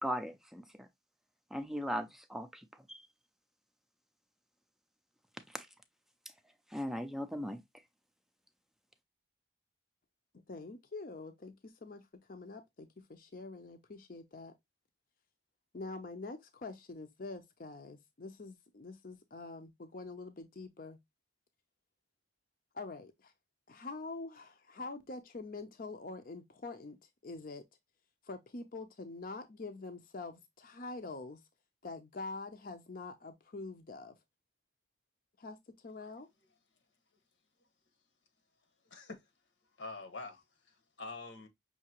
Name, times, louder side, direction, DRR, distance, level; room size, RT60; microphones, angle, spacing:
voice 1, 0.0-0.9 1.5-2.6 2.9-3.0 5.5-5.7 6.7-7.6, equal, ahead, 0.4 m, -38 dB
voice 2, 10.5-14.5 15.7-21.0 22.7-23.3 23.7-27.6 28.2-31.4 31.8-34.2 35.4-36.3, left 3 dB, 50° left, 0.6 m, -45 dB
voice 3, 38.9-39.2 39.8-41.5, left 3 dB, 85° left, 1.2 m, -46 dB
5.7 x 2.7 x 2.8 m
head